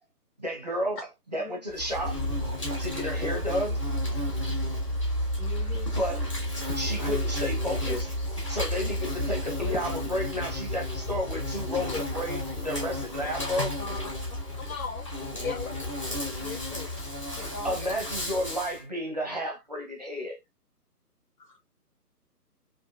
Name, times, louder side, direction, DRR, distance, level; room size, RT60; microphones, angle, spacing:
voice 1, 0.4-1.0 1.3-2.2 2.8-3.8 5.9-6.2 6.7-8.1 8.5-13.8 17.6-20.4, equal, 25° right, 0.5 m, -32 dB
Insect, 1.7-18.8, left 1 dB, 20° left, 0.6 m, -31 dB
voice 2, 5.4-5.9 9.6-9.8 11.7-12.0 13.8-14.1 15.4-15.6 16.1-16.9 17.3-17.9 21.4-21.6, left 3 dB, 90° left, 0.9 m, -39 dB
voice 3, 14.6-15.8, left 5 dB, 60° left, 0.7 m, -37 dB
2.5 x 2.3 x 2.3 m
figure-of-eight pair, 145°, 48 cm